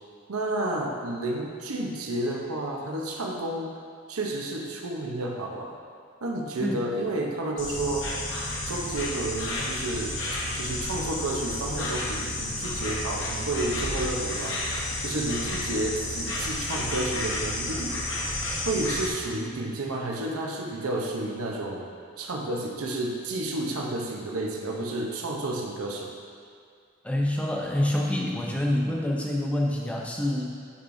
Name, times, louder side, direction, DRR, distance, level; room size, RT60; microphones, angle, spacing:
voice 1, 0.3-3.8 4.1-5.8 6.2-8.1 8.6-10.2 10.5-14.6 15.0-18.0 18.6-21.9 22.2-26.1, right 2 dB, 90° right, 0 dB, 0.8 m, -31 dB
Insect, 7.6-19.1, left 1 dB, 55° left, 0.9 m, -31 dB
voice 2, 27.0-30.6, left 1 dB, 5° left, -2 dB, 0.6 m, -27 dB
9.8 x 4.8 x 2.6 m, 2.2 s
head